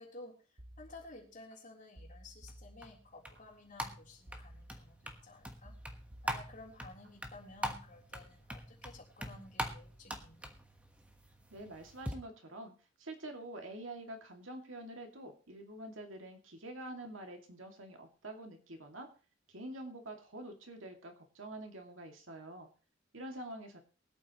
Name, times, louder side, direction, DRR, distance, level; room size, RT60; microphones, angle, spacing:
voice 1, 0.0-5.8 6.2-10.5, left 2 dB, 40° left, -2 dB, 3.6 m, -54 dB
sound 1, 0.6-1.6 2.0-3.4 4.3-5.2 5.6-7.1 7.5-7.9, equal, 55° right, 1.7 m, -55 dB
sound 2, 2.5-12.1, right 1 dB, 5° right, 1.3 m, -44 dB
voice 2, 11.5-12.7 13.0-19.1 19.5-22.7 23.1-23.8, right 1 dB, 85° right, 4 dB, 2.4 m, -46 dB
23.5 x 8.8 x 3.0 m, 0.37 s
head